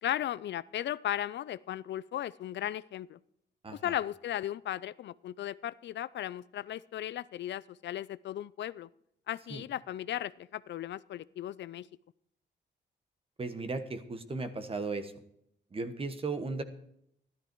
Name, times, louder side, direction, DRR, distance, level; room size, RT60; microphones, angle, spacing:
voice 1, 0.0-3.2 3.7-8.9 9.3-11.9, left 12 dB, 70° left, 19 dB, 0.4 m, -36 dB
voice 2, 3.6-3.9 9.5-9.6 13.4-15.1 15.7-16.6, right 3 dB, 30° right, 10 dB, 1.3 m, -36 dB
13.5 x 12.5 x 4.6 m, 0.73 s
cardioid pair, 115°, 19 cm